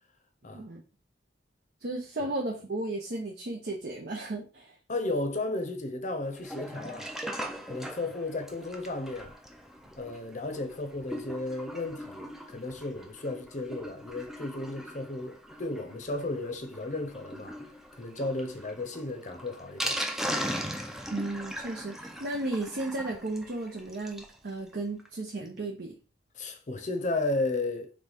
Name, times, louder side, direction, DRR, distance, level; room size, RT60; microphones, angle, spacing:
voice 1, 1.8-4.7 21.1-25.9, right 2 dB, 60° right, 0.7 m, -34 dB
voice 2, 4.9-7.1 7.7-9.3 10.0-17.6 18.0-20.0 26.3-27.9, left 2 dB, 40° left, 0.7 m, -34 dB
Sink (filling or washing), 6.3-24.4 24.7-24.8 25.0-25.1 25.5-25.6, equal, ahead, 0.4 m, -39 dB
3.9 x 3.3 x 3.4 m
head